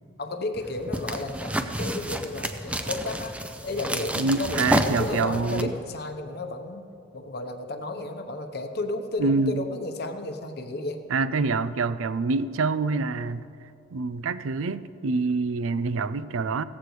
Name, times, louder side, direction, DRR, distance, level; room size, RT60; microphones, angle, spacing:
voice 1, 0.2-3.4 3.6-6.9 7.1-11.0, left 2 dB, 55° left, 6 dB, 0.9 m, -33 dB
sound 1, 0.5-5.6, right 1 dB, 5° right, 0.5 m, -30 dB
voice 2, 4.2-5.7 9.2-9.6 11.1-13.5 13.9-16.6, right 3 dB, 90° right, 15 dB, 0.5 m, -26 dB
16.5 x 14.5 x 3.2 m, 2.7 s
head